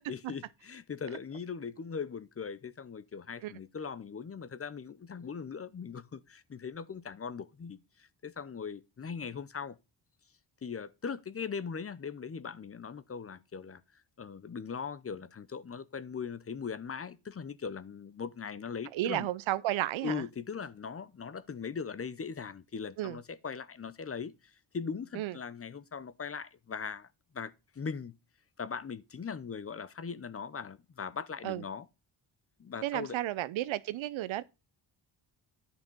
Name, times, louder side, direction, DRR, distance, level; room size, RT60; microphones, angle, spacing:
voice 1, 0.0-9.8 10.6-13.8 14.2-19.3 20.0-24.3 24.7-27.1 27.3-28.2 28.6-31.9 32.6-33.2, left 6 dB, 30° left, 0.7 m, -40 dB
voice 2, 18.9-20.2 23.0-23.2 25.1-25.4 31.4-31.6 32.8-34.4, right 15 dB, 85° right, 0.7 m, -33 dB
10.5 x 5.8 x 5.3 m
cardioid pair, 110°, 46 cm